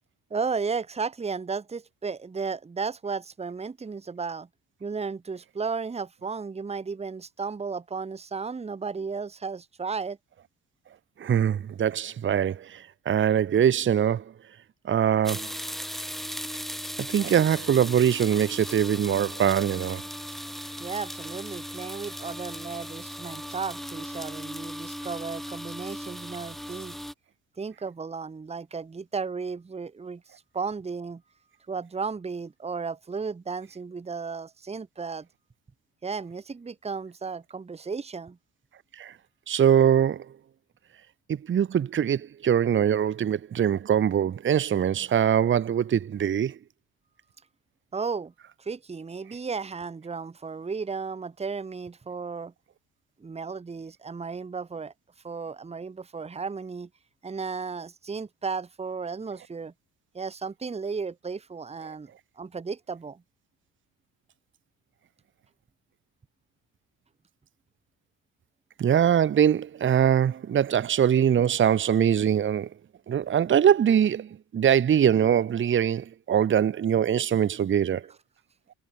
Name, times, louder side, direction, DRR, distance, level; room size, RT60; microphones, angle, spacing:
voice 1, 0.3-4.5 4.8-10.2 20.8-27.0 27.6-30.2 30.5-31.2 31.7-35.3 36.0-38.4 47.9-48.3 48.6-52.5 53.2-54.9 55.2-56.9 57.2-59.7 60.1-62.1 62.4-63.2, right 5 dB, 15° right, 1.5 m, -34 dB
voice 2, 11.2-14.2 14.8-15.5 17.0-20.0 39.0-39.1 39.5-40.2 41.3-46.6 68.8-72.7 73.1-78.0, right 9 dB, 30° right, 1.0 m, -23 dB
sound 1, 15.2-27.1, equal, ahead, 1.8 m, -37 dB
cardioid pair, 170°, 38 cm